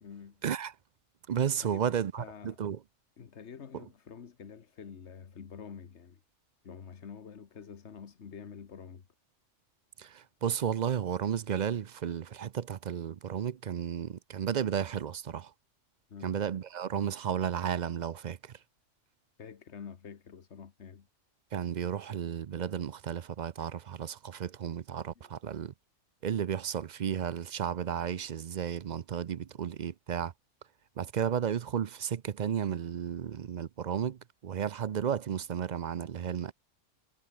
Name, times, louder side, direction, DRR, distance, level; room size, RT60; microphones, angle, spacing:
voice 1, 0.0-0.4 1.6-2.6 3.2-6.2 6.6-9.1 16.1-16.4 19.4-21.1 25.1-25.3, left 6 dB, 65° left, 1.6 m, -47 dB
voice 2, 1.3-2.8 10.0-15.5 16.2-18.5 21.5-25.7 26.2-30.3 31.0-36.5, right 8 dB, 50° right, 0.6 m, -33 dB
omnidirectional pair, 1.3 m